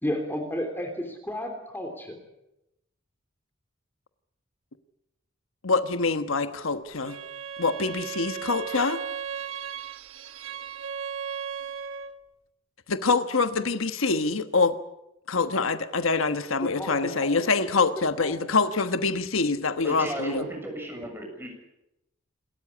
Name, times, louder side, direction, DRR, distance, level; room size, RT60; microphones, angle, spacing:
voice 1, 0.0-2.2 16.2-16.3 16.6-17.3 18.0-18.4, left 1 dB, 10° left, 4 dB, 3.3 m, -32 dB
voice 2, 5.6-7.2 7.6-9.0 12.9-14.7 15.3-20.5, left 4 dB, 85° left, 10 dB, 1.3 m, -25 dB
Bowed string instrument, 7.0-12.2, right 7 dB, 75° right, 1.7 m, -36 dB
voice 3, 19.8-21.5, right 1 dB, 10° right, 2 dB, 7.0 m, -35 dB
28.0 x 13.5 x 9.9 m, 0.90 s
head